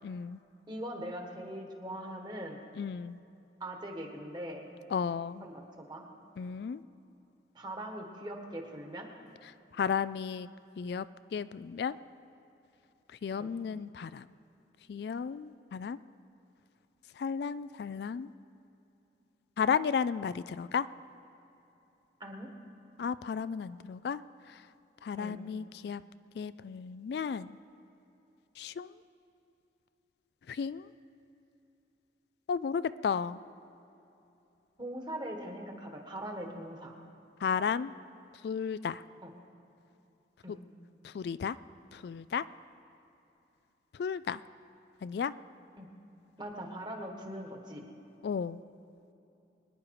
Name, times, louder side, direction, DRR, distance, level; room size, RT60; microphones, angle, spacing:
voice 1, 0.0-0.4 2.8-3.2 4.9-5.4 6.4-6.8 9.8-10.5 10.8-11.0 11.3-12.0 13.2-14.3 14.9-16.0 17.2-18.3 19.6-20.9 23.0-24.2 25.0-26.0 26.4-27.6 28.6-28.9 30.5-30.9 32.5-33.4 37.4-37.9 38.4-39.0 41.0-41.6 41.9-42.4 44.0-44.4 45.0-45.3 48.2-48.6, left 6 dB, 60° left, 15 dB, 0.3 m, -33 dB
voice 2, 0.7-2.6 3.6-4.7 5.4-6.0 7.5-9.1 13.4-13.5 22.2-22.5 25.2-25.4 34.8-37.0 39.2-39.3 40.4-40.6 45.8-45.9 46.4-47.9, right 1 dB, 25° right, 2 dB, 1.6 m, -41 dB
23.5 x 10.0 x 4.8 m, 2.9 s
head